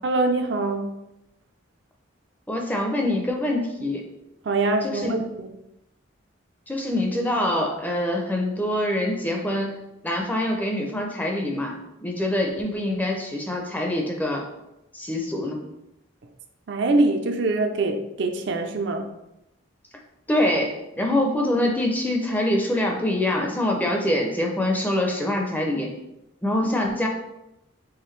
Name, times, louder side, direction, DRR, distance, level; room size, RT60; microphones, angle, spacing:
voice 1, 0.0-0.9 4.4-5.5 16.7-19.1, right 2 dB, 60° right, 5 dB, 0.4 m, -24 dB
voice 2, 2.5-4.0 4.8-5.1 6.7-9.7 10.0-14.4 14.9-15.6 20.3-25.9 26.4-27.1, left 1 dB, 10° left, 1 dB, 0.5 m, -25 dB
4.7 x 3.3 x 3.2 m, 0.90 s
head